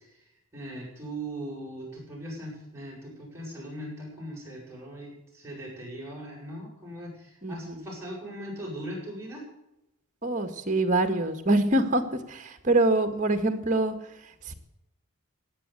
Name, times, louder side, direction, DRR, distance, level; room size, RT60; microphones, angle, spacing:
voice 1, 0.5-9.4, right 1 dB, 10° right, -4 dB, 7.4 m, -39 dB
voice 2, 7.4-7.9 10.2-12.0 12.3-13.9 14.5-14.6, right 2 dB, 35° right, 7 dB, 1.8 m, -25 dB
16.0 x 9.9 x 8.0 m, 0.88 s
head